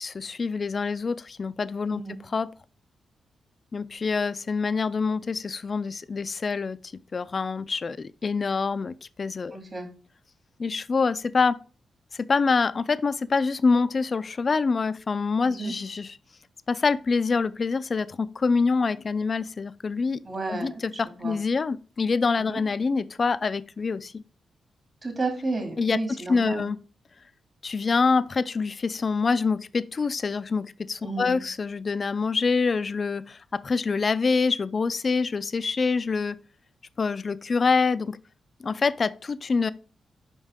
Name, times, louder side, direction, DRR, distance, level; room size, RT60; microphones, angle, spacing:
voice 1, 0.0-2.5 3.7-6.8 7.1-9.6 10.6-11.6 12.1-16.2 16.7-20.2 20.5-24.2 25.8-26.8 27.6-36.4 37.0-38.2 38.6-39.7, left 4 dB, 45° left, 0.4 m, -26 dB
voice 2, 9.5-9.9 15.5-15.7 20.2-21.4 22.4-22.6 25.0-26.7 31.0-31.4, right 3 dB, 40° right, 2.3 m, -32 dB
5.4 x 5.3 x 3.6 m
cardioid pair, 70°, 0 cm